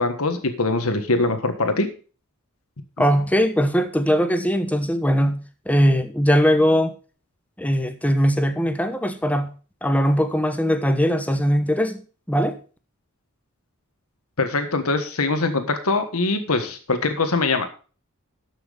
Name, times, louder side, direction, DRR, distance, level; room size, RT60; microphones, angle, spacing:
voice 1, 0.0-1.9 14.4-17.7, left 3 dB, 80° left, 8 dB, 1.5 m, -22 dB
voice 2, 3.0-6.9 7.6-9.5 9.8-12.0 12.3-12.6, equal, 5° left, 9 dB, 1.0 m, -20 dB
13.0 x 6.2 x 5.1 m, 0.38 s
head